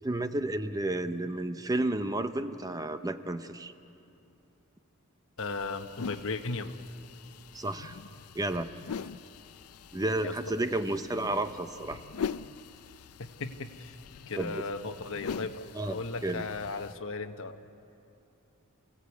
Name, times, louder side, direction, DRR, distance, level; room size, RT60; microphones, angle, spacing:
voice 1, 0.0-3.7 7.5-8.0 8.3-8.7 9.9-12.0 14.4-14.6 15.7-16.4, right 2 dB, 15° right, 9 dB, 0.7 m, -32 dB
sound 1, 5.4-16.9, left 6 dB, 85° left, 0.5 m, -43 dB
voice 2, 5.4-6.7 10.1-10.3 13.2-13.9 14.3-17.6, left 3 dB, 65° left, 7 dB, 1.2 m, -36 dB
28.0 x 16.5 x 8.4 m, 2.8 s
head